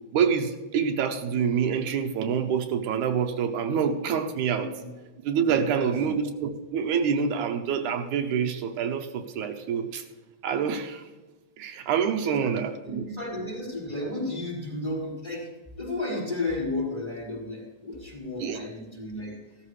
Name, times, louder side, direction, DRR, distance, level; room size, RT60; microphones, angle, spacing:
voice 1, 0.1-4.7 5.2-10.0 10.4-11.1 11.6-13.0 18.4-18.6, right 7 dB, 80° right, 5 dB, 2.3 m, -26 dB
voice 2, 4.5-4.9 5.7-5.9 12.2-19.4, left 2 dB, 10° left, -3 dB, 4.4 m, -33 dB
16.5 x 13.0 x 3.2 m, 1.1 s
omnidirectional pair, 3.5 m